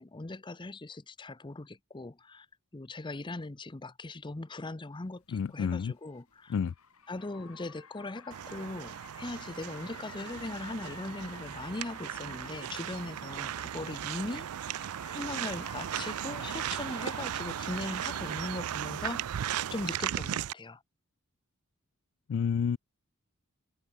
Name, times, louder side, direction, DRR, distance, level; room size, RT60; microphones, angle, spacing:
voice 1, 0.0-2.5 2.7-6.6 7.1-14.8 15.1-19.3 19.7-20.8, left 2 dB, 20° left, 0.7 m, -40 dB
Car, 5.2-19.2, left 6 dB, 85° left, 4.9 m, -52 dB
voice 2, 5.3-5.9 6.5-6.7 22.3-22.8, left 6 dB, 60° left, 0.3 m, -29 dB
sound 1, 8.3-20.5, right 10 dB, 90° right, 0.4 m, -37 dB
open air
head